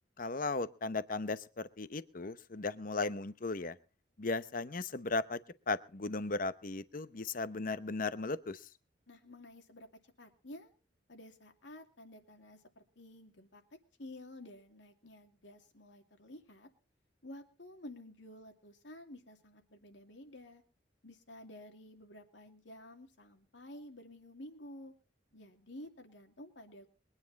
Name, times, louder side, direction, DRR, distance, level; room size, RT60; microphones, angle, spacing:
voice 1, 0.2-3.8 4.2-5.4 5.7-8.7, left 3 dB, 45° left, 14 dB, 0.8 m, -36 dB
voice 2, 9.1-9.9 10.2-10.7 11.1-13.6 14.0-16.7 17.2-20.6 21.0-24.9 25.3-27.0, left 1 dB, 75° left, 4 dB, 2.6 m, -52 dB
22.5 x 9.8 x 4.1 m, 0.35 s
head